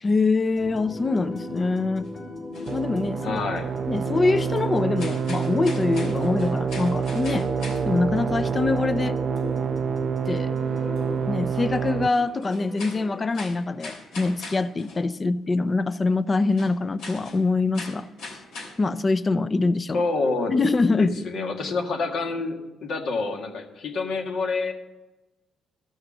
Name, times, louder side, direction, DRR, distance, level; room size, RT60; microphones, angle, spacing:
voice 1, 0.0-2.1 2.7-3.4 3.9-7.5 7.8-9.2 10.3-10.5 11.3-18.1 18.8-20.0 20.5-21.1, left 3 dB, 30° left, 14 dB, 0.5 m, -24 dB
sound 1, 0.6-13.2, left 2 dB, 50° left, 2.6 m, -36 dB
sound 2, 2.0-2.1 2.5-3.7 4.2-4.4 4.8-8.4 8.7-8.8 9.4-9.5 9.7-9.8 10.4-10.5 10.9-11.0 11.7-11.8 12.3-15.3 15.6-15.7 16.4-19.2, left 3 dB, 90° left, 3.2 m, -41 dB
sound 3, 2.7-12.1, right 7 dB, 55° right, 0.4 m, -27 dB
voice 2, 3.2-3.7 19.9-20.5 21.0-24.7, left 3 dB, 70° left, 2 dB, 1.7 m, -27 dB
13.5 x 6.4 x 6.2 m, 1.1 s
cardioid pair, 90°, 0 cm